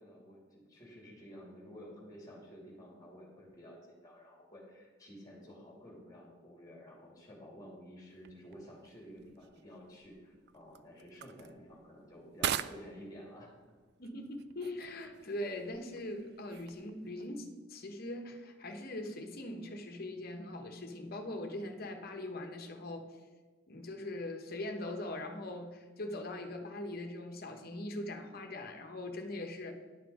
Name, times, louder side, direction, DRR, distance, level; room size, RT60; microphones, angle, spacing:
voice 1, 0.0-13.5, equal, 20° left, -2 dB, 2.8 m, -52 dB
sound 1, 8.1-17.3, right 9 dB, 60° right, 0.3 m, -44 dB
voice 2, 14.0-23.1 23.7-29.7, left 1 dB, 55° left, 5 dB, 1.1 m, -41 dB
10.5 x 5.9 x 4.8 m, 1.4 s
head